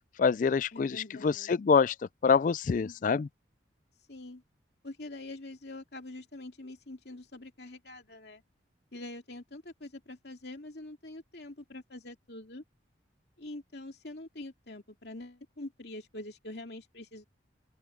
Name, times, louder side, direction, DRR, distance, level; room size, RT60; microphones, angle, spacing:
voice 1, 0.2-1.9 2.2-3.3, left 5 dB, 45° left, 0.3 m, -26 dB
voice 2, 0.7-1.5 2.7-3.2 4.1-4.4 4.8-8.4 8.9-12.6 13.4-17.2, left 2 dB, 60° left, 2.6 m, -45 dB
open air
head